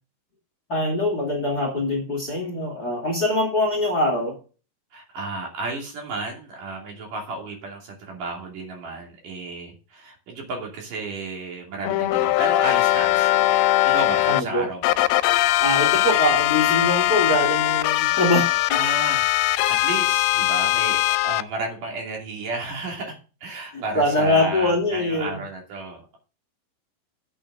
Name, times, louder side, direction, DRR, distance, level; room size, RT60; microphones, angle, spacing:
voice 1, 0.7-4.3 14.3-14.7 15.6-18.5 23.7-25.4, left 1 dB, 30° left, 1 dB, 2.2 m, -23 dB
voice 2, 4.9-13.6 13.9-15.0 18.7-23.2 23.4-26.2, right 3 dB, 60° right, 1 dB, 4.2 m, -33 dB
sound 1, 11.8-14.4 14.8-21.4, left 16 dB, 85° left, 2.5 m, -20 dB
8.5 x 6.4 x 6.2 m, 0.35 s
omnidirectional pair, 4.4 m